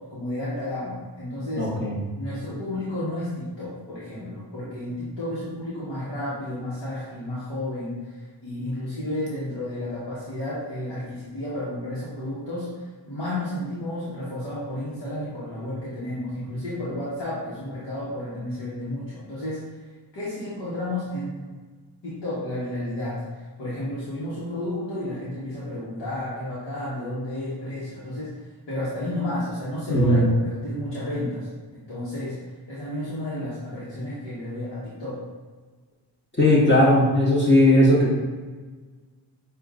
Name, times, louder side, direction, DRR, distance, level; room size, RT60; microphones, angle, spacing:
voice 1, 0.1-1.7 2.2-19.7 20.1-21.5 22.0-28.4 28.7-32.3 32.7-35.2, left 1 dB, 75° left, -10 dB, 1.3 m, -32 dB
voice 2, 1.6-2.0 29.9-30.3 36.4-38.1, left 1 dB, 25° left, -6 dB, 1.1 m, -18 dB
6.8 x 2.6 x 2.4 m, 1.4 s
cardioid pair, 50°, 43 cm